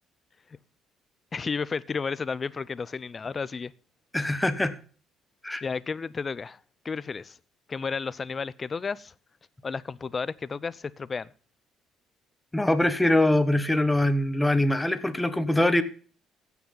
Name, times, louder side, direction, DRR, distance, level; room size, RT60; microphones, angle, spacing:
voice 1, 1.3-3.7 5.6-6.6 6.8-7.4 7.7-9.1 9.6-11.3, left 5 dB, 35° left, 0.6 m, -32 dB
voice 2, 4.1-4.7 5.4-5.6 12.5-15.8, left 1 dB, 10° left, 1.3 m, -23 dB
16.0 x 6.0 x 5.5 m
supercardioid pair, 85°, 0 cm